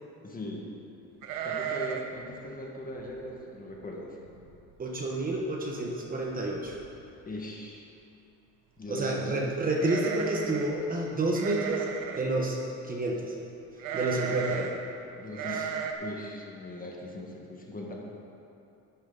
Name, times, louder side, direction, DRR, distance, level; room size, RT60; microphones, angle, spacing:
voice 1, 0.2-0.7 1.4-4.2 7.3-7.9 8.8-9.4 14.3-14.4 15.2-15.6 16.0-17.9, left 1 dB, 25° left, -1 dB, 1.7 m, -39 dB
sound 1, 1.2-2.2 2.4-2.5 3.0-3.3 3.8-3.9 4.2-4.7 5.1-5.2 6.3-6.4 6.7-7.1 9.8-10.8 11.3-12.3 13.8-14.8 15.3-15.9, right 7 dB, 85° right, 0.9 m, -35 dB
voice 2, 4.8-6.8 8.9-11.9 12.2-12.6 12.8-13.3 13.9-14.7 15.5-15.6, right 2 dB, 25° right, -1 dB, 1.2 m, -29 dB
10.5 x 10.5 x 4.0 m, 2.8 s
cardioid pair, 125°, 32 cm